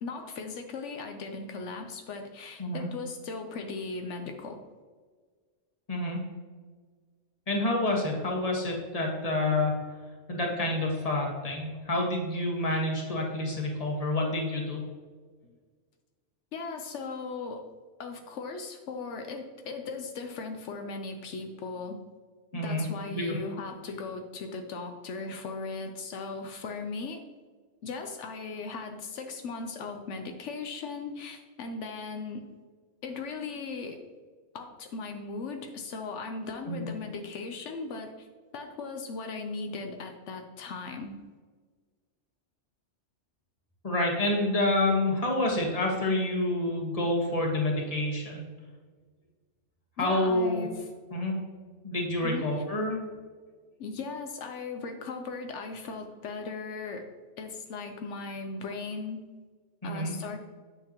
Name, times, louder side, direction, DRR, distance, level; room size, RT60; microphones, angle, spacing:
voice 1, 0.0-4.6 16.5-17.6 18.0-22.0 22.5-27.2 27.8-32.4 33.0-34.0 34.5-38.3 38.5-41.2 50.0-50.9 52.2-52.5 53.8-57.0 57.4-59.2 59.8-60.4, left 4 dB, 80° left, 4 dB, 1.0 m, -38 dB
voice 2, 7.5-9.8 10.3-14.8 22.5-22.8 23.1-23.4 36.7-36.9 43.8-48.5 50.0-50.7 51.1-51.4 51.8-53.0 59.8-60.1, left 2 dB, 30° left, -1 dB, 1.6 m, -28 dB
9.0 x 6.7 x 2.9 m, 1.5 s
omnidirectional pair, 1.2 m